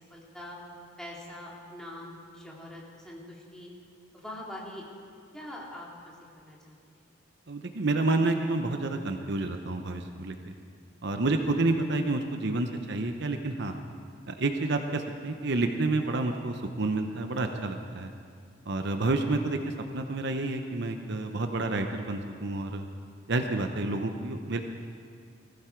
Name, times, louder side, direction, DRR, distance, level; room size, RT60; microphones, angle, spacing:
voice 1, 0.1-0.6 1.0-3.7 4.1-4.8 5.3-6.7 11.3-11.4, left 1 dB, 5° left, -4 dB, 2.5 m, -43 dB
voice 2, 7.5-10.5 11.0-13.8 14.3-18.1 18.7-22.9 23.3-24.6, right 2 dB, 55° right, 5 dB, 0.8 m, -29 dB
20.0 x 15.5 x 4.6 m, 2.2 s
head